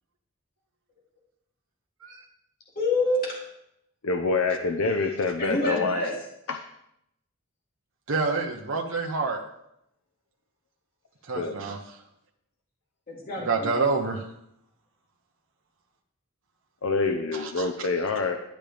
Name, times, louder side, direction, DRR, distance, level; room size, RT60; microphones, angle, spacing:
voice 1, 2.7-3.5 5.4-6.1 13.1-13.9, left 2 dB, 45° left, -5 dB, 3.0 m, -27 dB
voice 2, 4.0-6.2 6.5-6.6 11.3-11.6 16.8-18.4, left 3 dB, 75° left, 5 dB, 0.8 m, -26 dB
voice 3, 8.1-9.4 11.2-12.0 13.4-14.3 17.3-17.7, right 4 dB, 65° right, 1 dB, 0.9 m, -28 dB
12.0 x 10.0 x 3.5 m, 0.79 s
head